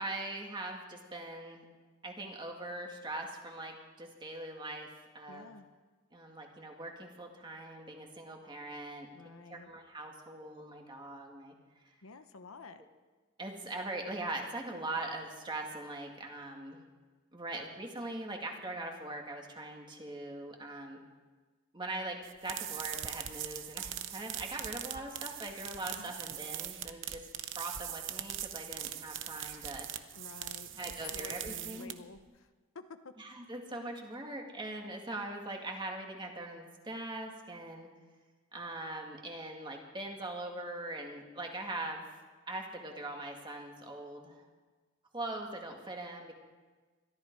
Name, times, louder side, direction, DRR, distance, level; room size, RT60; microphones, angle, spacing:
voice 1, 0.0-1.6 2.0-5.5 6.1-11.5 11.9-12.0 13.4-16.8 17.3-21.0 21.7-27.2 27.6-29.9 30.8-31.9 33.2-37.9 38.5-42.1 42.5-44.4 45.1-46.3, right 2 dB, 20° right, 1 dB, 2.2 m, -41 dB
voice 2, 5.3-5.7 9.1-9.7 12.0-12.8 25.9-26.2 30.2-32.5 32.7-33.1, left 4 dB, 80° left, 9 dB, 0.9 m, -50 dB
sound 1, 22.2-32.2, right 11 dB, 60° right, 0.8 m, -41 dB
22.0 x 14.0 x 4.7 m, 1.3 s
head